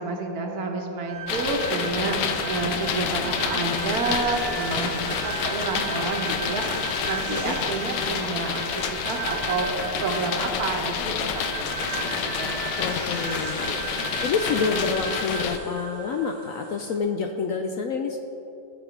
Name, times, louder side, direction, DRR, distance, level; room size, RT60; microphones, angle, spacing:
voice 1, 0.0-4.9 5.2-9.7 10.0-13.3 13.6-13.8, right 3 dB, 65° right, 2 dB, 1.4 m, -30 dB
sound 1, 1.0-17.0, right 7 dB, 35° right, 0.9 m, -36 dB
sound 2, 1.3-15.6, left 7 dB, 90° left, 1.3 m, -29 dB
voice 2, 12.8-13.8 14.2-18.2, left 5 dB, 70° left, 4 dB, 0.8 m, -28 dB
14.5 x 5.0 x 5.0 m, 2.9 s
omnidirectional pair, 1.8 m